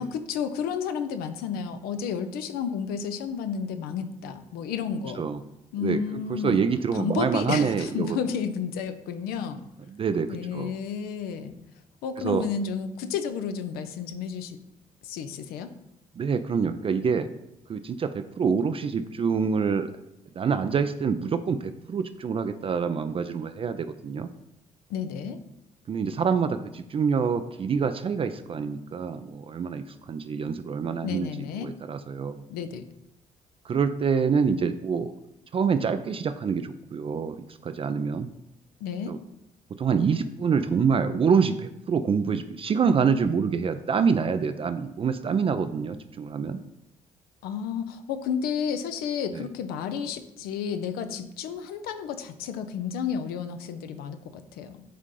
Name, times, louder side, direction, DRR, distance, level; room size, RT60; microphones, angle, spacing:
voice 1, 0.0-5.3 5.7-9.6 10.3-11.5 12.0-14.6 15.0-15.7 24.9-25.4 31.0-31.7 32.5-32.9 38.8-39.1 47.4-54.8, left 7 dB, 60° left, 9 dB, 0.5 m, -31 dB
voice 2, 5.8-8.2 9.9-10.8 12.2-12.5 16.2-17.3 17.7-19.9 20.4-24.3 25.9-31.3 31.6-32.4 33.6-35.1 35.5-37.4 37.6-38.3 39.1-39.2 39.8-46.6 49.3-49.4, right 6 dB, 30° right, 10 dB, 0.4 m, -26 dB
8.4 x 3.6 x 3.8 m, 0.85 s
figure-of-eight pair, 45°, 18 cm